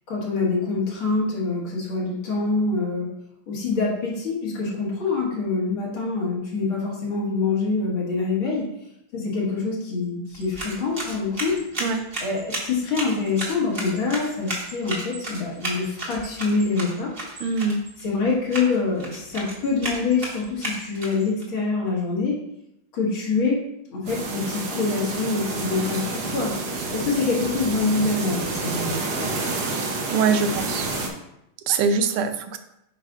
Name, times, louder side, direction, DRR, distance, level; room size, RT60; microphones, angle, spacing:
voice 1, 0.1-3.1 3.5-8.6 9.1-11.6 12.2-17.1 18.0-22.4 22.9-23.6 23.9-26.6 26.9-29.0, left 4 dB, 70° left, -4 dB, 2.3 m, -25 dB
sound 1, 10.3-21.4, right 1 dB, 30° right, 1.2 m, -34 dB
voice 2, 17.4-17.8 30.1-30.9 31.7-32.6, right 5 dB, 80° right, 9 dB, 1.5 m, -23 dB
sound 2, 24.1-31.1, right 3 dB, 60° right, 1.3 m, -29 dB
8.5 x 5.0 x 2.4 m, 0.83 s
omnidirectional pair, 2.4 m